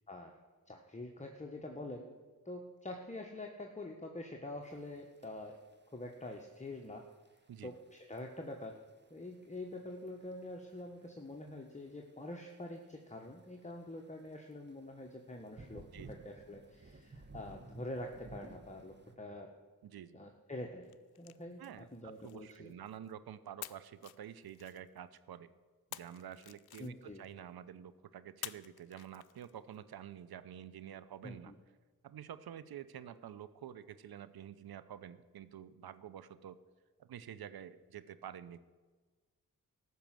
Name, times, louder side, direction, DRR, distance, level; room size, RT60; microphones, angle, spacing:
voice 1, 0.7-2.1 2.4-5.6 5.9-7.0 7.6-8.8 9.1-19.5 20.1-22.7 26.8-27.2 31.2-31.5, left 1 dB, 20° left, 2 dB, 1.4 m, -46 dB
sound 1, 4.6-19.2, right 2 dB, 30° right, 1.3 m, -58 dB
voice 2, 15.9-16.2 19.8-20.2 21.6-25.5 25.9-31.5 32.0-36.6 37.0-38.6, right 9 dB, 70° right, 15 dB, 0.7 m, -49 dB
sound 2, 20.8-23.1 23.6-25.2 25.9-27.3 28.4-29.8, left 14 dB, 75° left, 0.5 m, -51 dB
14.0 x 6.0 x 7.6 m, 1.4 s
cardioid pair, 45°, 38 cm